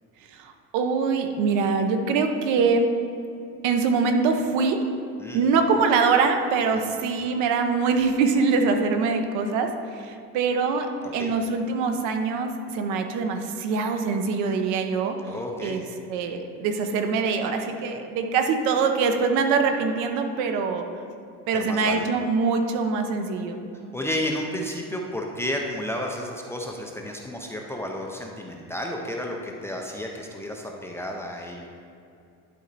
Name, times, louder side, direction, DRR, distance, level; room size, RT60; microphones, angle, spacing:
voice 1, 0.3-2.9 3.6-4.8 5.3-15.2 15.6-15.8 16.1-20.8 21.5-23.6, right 4 dB, 70° right, 5 dB, 0.8 m, -24 dB
voice 2, 15.3-15.8 21.5-22.0 23.9-31.7, left 1 dB, 10° left, 0 dB, 0.4 m, -32 dB
11.0 x 4.2 x 4.0 m, 2.6 s
cardioid pair, 155°, 32 cm